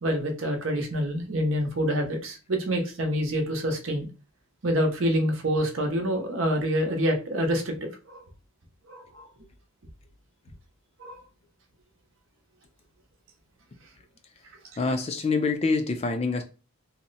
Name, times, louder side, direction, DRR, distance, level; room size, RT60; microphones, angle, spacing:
voice 1, 0.0-4.1 4.6-8.2 8.9-9.3 11.0-11.2, equal, 65° right, 0.8 m, -27 dB
voice 2, 14.8-16.4, left 3 dB, 30° left, 0.3 m, -26 dB
2.8 x 2.1 x 3.9 m
head